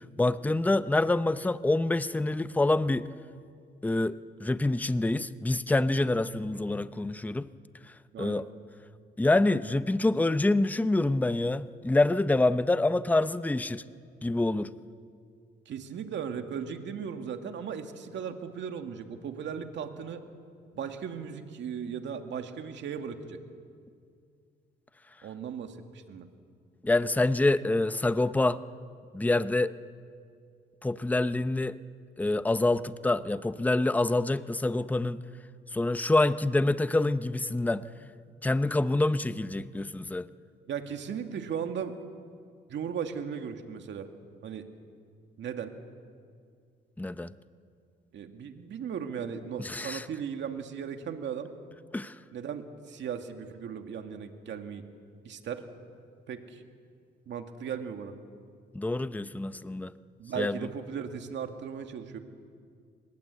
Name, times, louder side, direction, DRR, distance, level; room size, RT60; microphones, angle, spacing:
voice 1, 0.2-3.1 3.8-7.5 8.2-8.5 9.2-13.8 14.2-14.7 26.8-28.6 29.1-29.7 30.8-31.7 32.2-35.2 35.7-37.8 38.4-40.3 47.0-47.3 49.6-50.0 51.9-52.2 58.7-59.9 60.4-60.6, left 2 dB, 10° left, 13 dB, 0.7 m, -26 dB
voice 2, 15.7-20.2 20.7-23.4 25.2-25.8 26.1-26.3 40.7-41.9 42.7-44.1 44.4-44.6 45.4-45.7 48.1-51.5 52.3-54.8 55.2-55.6 56.3-56.6 57.3-58.1 60.2-62.2, right 7 dB, 65° right, 6 dB, 2.2 m, -37 dB
25.0 x 21.5 x 8.3 m, 2.2 s
cardioid pair, 90°, 20 cm